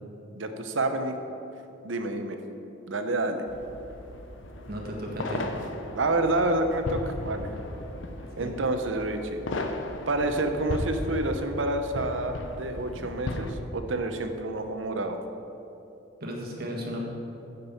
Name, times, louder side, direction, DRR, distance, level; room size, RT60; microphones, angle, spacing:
voice 1, 0.3-1.1 1.8-2.4 2.9-3.4 5.9-7.5 8.4-9.4 10.1-15.2, right 2 dB, 85° right, 7 dB, 0.8 m, -28 dB
sound 1, 3.5-13.5, left 2 dB, 75° left, 0.7 m, -36 dB
voice 2, 4.7-5.4 8.4-8.5 16.2-17.1, equal, 55° right, -2 dB, 1.6 m, -34 dB
9.4 x 5.4 x 7.0 m, 2.9 s
head